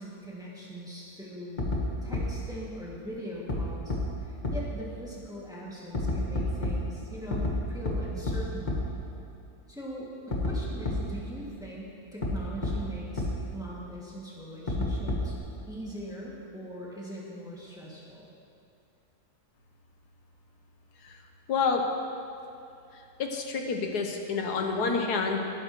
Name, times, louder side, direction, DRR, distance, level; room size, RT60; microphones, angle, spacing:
voice 1, 0.0-1.7 2.0-8.8 9.7-13.3 13.5-15.3 15.7-18.3, equal, ahead, -6 dB, 2.3 m, -41 dB
sound 1, 1.6-1.8 2.1-2.2 3.5-3.6 3.9-4.0 4.4-4.5 5.9-6.7 7.3-7.5 7.8-7.9 8.3-8.4 8.7-8.8 10.3-10.5 10.8-10.9 12.2-12.3 12.6-12.7 13.2-13.3 14.7-15.4, left 2 dB, 30° left, 1.5 m, -29 dB
voice 2, 21.5-21.8 23.2-25.4, left 4 dB, 90° left, 3 dB, 1.6 m, -28 dB
18.5 x 10.5 x 3.2 m, 2.6 s
omnidirectional pair, 1.7 m